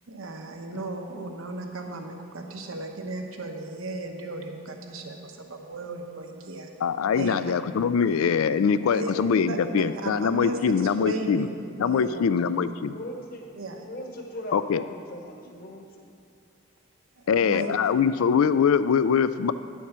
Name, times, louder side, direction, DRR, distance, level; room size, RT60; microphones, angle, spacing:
voice 1, 0.1-6.7 7.1-7.4 8.9-9.1 9.5-12.1 13.5-13.9 15.5-15.6 17.2-17.7, right 2 dB, 85° right, 3 dB, 1.0 m, -35 dB
voice 2, 6.8-11.5 11.8-13.0 14.5-14.8 17.3-19.5, left 6 dB, 90° left, 14 dB, 0.4 m, -23 dB
voice 3, 12.0-12.3 12.8-16.1, equal, 45° left, 1 dB, 1.2 m, -40 dB
9.8 x 7.1 x 6.1 m, 2.3 s
head